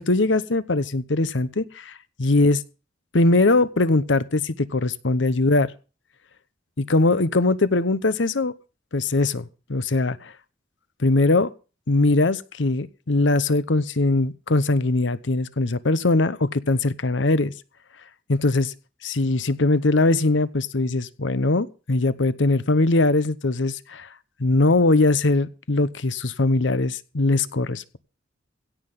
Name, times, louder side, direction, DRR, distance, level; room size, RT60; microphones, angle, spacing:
voice 1, 0.0-1.9 2.2-2.6 3.1-5.7 6.8-8.5 8.9-10.3 11.0-11.5 11.9-17.5 18.3-18.7 19.0-24.1 24.4-28.0, left 2 dB, 70° left, 16 dB, 0.9 m, -21 dB
16.5 x 5.8 x 9.1 m, 0.36 s
head